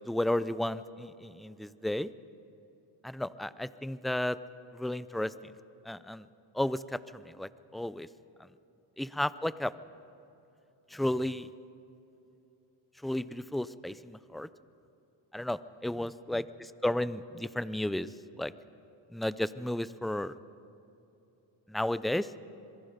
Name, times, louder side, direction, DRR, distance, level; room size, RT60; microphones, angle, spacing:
voice 1, 0.1-2.1 3.0-4.4 4.7-5.5 5.9-6.2 6.5-8.1 9.0-9.7 10.9-11.5 13.0-14.5 15.3-18.1 18.4-18.5 19.1-20.3 21.7-22.3, left 1 dB, ahead, 16 dB, 0.4 m, -33 dB
27.5 x 22.0 x 5.2 m, 2.9 s
cardioid pair, 95°, 49 cm